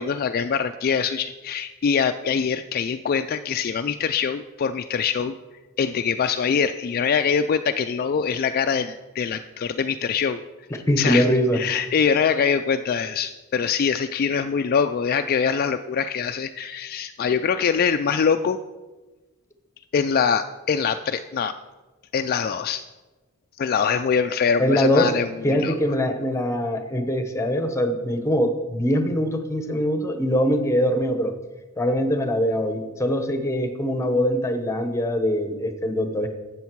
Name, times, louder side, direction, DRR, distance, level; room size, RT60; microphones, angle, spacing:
voice 1, 0.0-5.3 5.8-10.4 10.7-18.6 19.9-21.5 22.1-22.8 23.6-25.7, left 6 dB, 45° left, 8 dB, 0.3 m, -23 dB
voice 2, 10.9-11.6 24.6-25.2 25.4-31.3 31.8-36.3, equal, 15° left, 8 dB, 1.0 m, -22 dB
13.0 x 8.2 x 4.6 m, 1.2 s
head